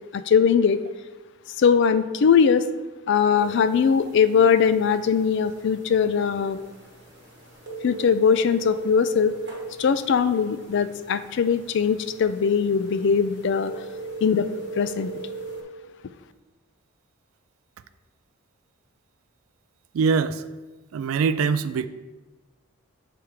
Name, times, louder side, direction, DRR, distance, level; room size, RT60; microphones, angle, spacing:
voice 1, 0.1-0.8 1.6-2.6 3.1-6.6 7.8-9.3 9.8-13.7 14.2-14.5 14.8-15.1, left 6 dB, 55° left, 12 dB, 0.3 m, -20 dB
sound 1, 3.4-15.6, right 3 dB, 55° right, 1.1 m, -39 dB
voice 2, 19.9-20.4 20.9-21.9, right 5 dB, 70° right, 13 dB, 0.3 m, -23 dB
7.1 x 3.4 x 4.7 m, 1.2 s
head